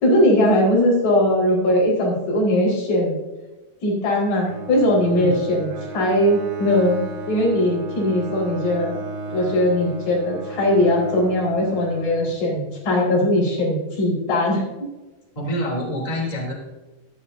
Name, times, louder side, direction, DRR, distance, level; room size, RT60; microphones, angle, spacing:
voice 1, 0.0-3.2 3.8-5.7 5.9-9.0 9.3-14.6, left 1 dB, 80° left, -4 dB, 6.8 m, -20 dB
Bowed string instrument, 4.4-12.7, right 3 dB, 75° right, 3.3 m, -35 dB
voice 2, 15.3-16.5, equal, 10° left, -2 dB, 3.0 m, -26 dB
14.0 x 13.5 x 2.8 m, 1.1 s
omnidirectional pair, 4.2 m